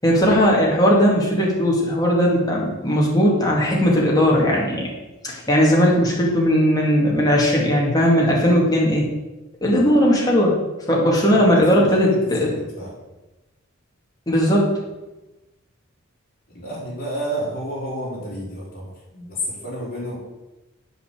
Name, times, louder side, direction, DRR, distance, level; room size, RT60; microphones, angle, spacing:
voice 1, 0.0-4.8 5.2-9.1 9.6-10.6 10.9-12.5 14.3-14.7, equal, 20° left, -3 dB, 2.3 m, -18 dB
voice 2, 11.3-13.0 16.5-20.2, equal, 45° left, -6 dB, 4.0 m, -31 dB
8.2 x 5.5 x 7.6 m, 1.1 s
head